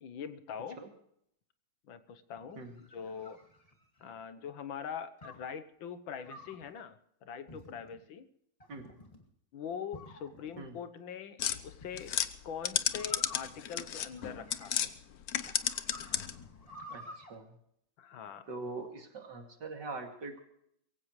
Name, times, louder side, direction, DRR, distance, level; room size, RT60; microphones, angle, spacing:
voice 1, 0.0-0.8 1.9-3.4 4.0-8.3 9.5-12.1 12.4-14.8 18.0-18.5, left 7 dB, 80° left, 11 dB, 1.8 m, -43 dB
sound 1, 2.4-4.2 5.2-5.5 6.2-6.7 7.5-8.0 8.6-9.2 9.9-10.7 11.8-12.1 12.9-15.0 15.4-17.3, left 1 dB, 20° left, 2.2 m, -51 dB
sound 2, 11.4-14.9 15.2-16.5, left 10 dB, 60° left, 1.1 m, -33 dB
voice 2, 16.9-17.4 18.5-20.4, right 3 dB, 60° right, 3 dB, 3.0 m, -42 dB
23.0 x 16.0 x 3.2 m, 0.73 s
omnidirectional pair, 2.1 m